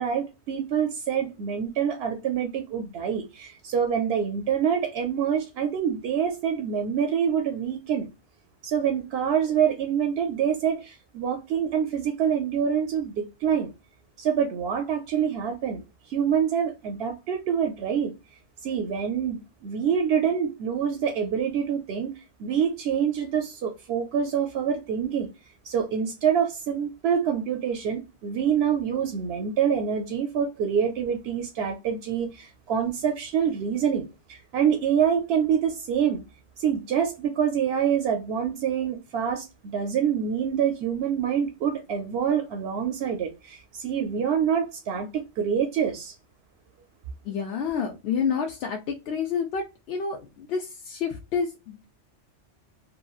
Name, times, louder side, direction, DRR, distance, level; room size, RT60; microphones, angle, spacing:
voice 1, 0.0-8.1 8.6-13.7 14.2-15.8 16.1-18.1 18.6-22.1 22.4-25.3 25.7-34.0 34.3-36.2 36.6-46.1, right 8 dB, 65° right, 0.8 m, -26 dB
voice 2, 47.2-51.8, left 6 dB, 65° left, 0.8 m, -29 dB
3.0 x 2.5 x 2.3 m
omnidirectional pair, 1.2 m